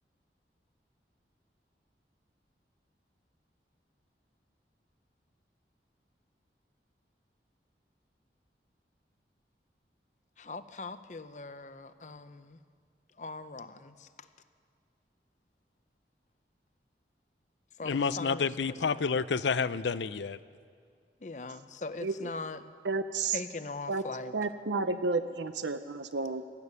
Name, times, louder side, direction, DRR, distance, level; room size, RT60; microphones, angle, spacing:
voice 1, 10.4-12.6 13.2-14.1 17.8-18.8 21.2-22.6 23.3-24.3 24.9-25.0, left 3 dB, 40° left, 12 dB, 0.7 m, -41 dB
voice 2, 17.8-20.4, left 5 dB, 80° left, 15 dB, 0.6 m, -29 dB
voice 3, 22.8-23.4 23.9-24.0 24.3-26.4, right 3 dB, 85° right, 10 dB, 0.7 m, -31 dB
19.5 x 14.0 x 9.7 m, 2.2 s
head